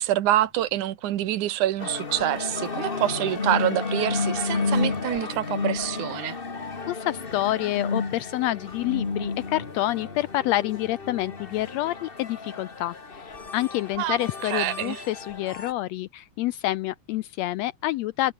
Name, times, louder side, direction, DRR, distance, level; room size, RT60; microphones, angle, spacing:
voice 1, 0.0-6.4 14.0-14.2 14.4-15.0, right 13 dB, 75° right, 2.6 m, -26 dB
sound 1, 1.8-15.7, left 4 dB, 25° left, 1.2 m, -32 dB
voice 2, 6.9-18.3, left 16 dB, 85° left, 1.5 m, -28 dB
omnidirectional pair, 3.6 m